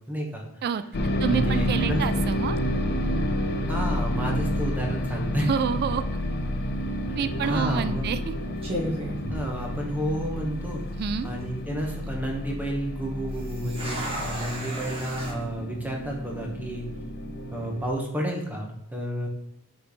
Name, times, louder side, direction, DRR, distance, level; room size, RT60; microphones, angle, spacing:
voice 1, 0.1-0.4 1.2-2.0 3.7-5.5 7.1-7.2 7.4-8.1 9.3-10.8 11.2-16.9 17.5-19.3, equal, 10° right, 0 dB, 1.3 m, -31 dB
sound 1, 0.9-17.9, equal, 50° left, 0.7 m, -30 dB
voice 2, 1.2-2.6 5.4-6.0 7.1-8.3 10.9-11.3, right 7 dB, 45° right, 12 dB, 0.3 m, -28 dB
sound 2, 7.1-7.4 8.1-8.3 8.6-10.2 10.5-10.6 11.2-11.6 13.3-15.3, equal, 25° right, 1.9 m, -34 dB
6.2 x 5.1 x 3.1 m, 0.82 s
head